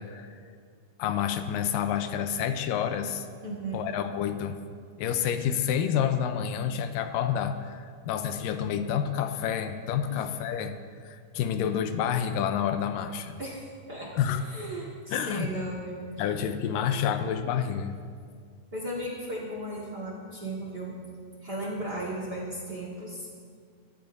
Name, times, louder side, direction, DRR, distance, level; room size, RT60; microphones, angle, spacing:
voice 1, 1.0-3.3 3.7-4.6 5.0-10.7 11.0-13.4 14.1-14.4 15.1-15.5 16.2-18.0, left 8 dB, 85° left, 8 dB, 2.4 m, -29 dB
voice 2, 3.4-3.8 10.1-10.2 13.4-14.1 14.4-16.0 18.7-20.9 21.4-23.3, right 1 dB, 40° right, -3 dB, 1.7 m, -36 dB
23.5 x 14.0 x 2.7 m, 2.1 s
omnidirectional pair, 4.0 m